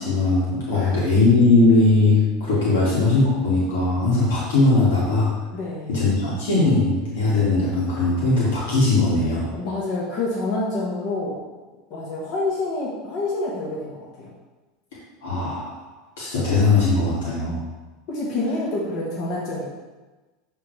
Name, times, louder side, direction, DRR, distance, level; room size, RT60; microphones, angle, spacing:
voice 1, 0.0-5.3 5.9-9.4 15.2-15.8 16.2-17.6, left 3 dB, 85° left, -8 dB, 2.2 m, -19 dB
voice 2, 0.7-1.0 2.6-2.8 5.5-5.9 9.4-11.4 11.9-14.3 17.5-17.6 18.1-19.7, left 2 dB, 50° left, -6 dB, 1.6 m, -28 dB
11.0 x 3.7 x 3.4 m, 1.2 s
supercardioid pair, 125°, 0 cm